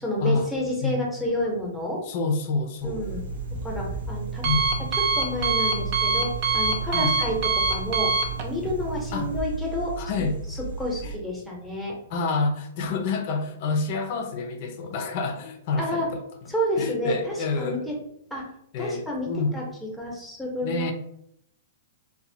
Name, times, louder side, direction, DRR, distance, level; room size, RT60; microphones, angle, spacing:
voice 1, 0.0-2.0 2.8-3.2 3.6-4.5 5.2-8.1 8.4-10.3 10.8-12.0 15.8-16.1 16.5-17.9 18.3-18.4 18.8-19.6 20.0-20.9, equal, ahead, -2 dB, 0.8 m, -29 dB
voice 2, 2.0-3.2 4.4-4.9 6.9-7.2 9.1-9.3 10.0-10.4 11.0-11.1 12.1-16.2 16.8-17.8 18.7-19.6 20.6-20.9, left 3 dB, 50° left, 5 dB, 0.5 m, -28 dB
sound 1, 2.8-11.2, right 4 dB, 90° right, 0.7 m, -37 dB
Alarm, 3.0-9.4, right 4 dB, 45° right, 0.5 m, -26 dB
2.8 x 2.1 x 2.7 m, 0.74 s
hypercardioid pair, 135°, 0 cm